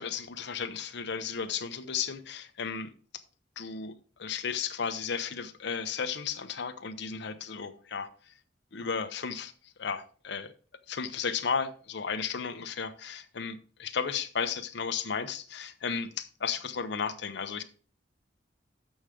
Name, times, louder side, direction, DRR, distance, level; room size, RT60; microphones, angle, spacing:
voice 1, 0.0-2.9 3.6-3.9 4.2-8.1 8.7-9.5 9.8-10.5 10.9-17.6, left 6 dB, 65° left, 0.7 m, -34 dB
7.1 x 6.4 x 4.9 m
head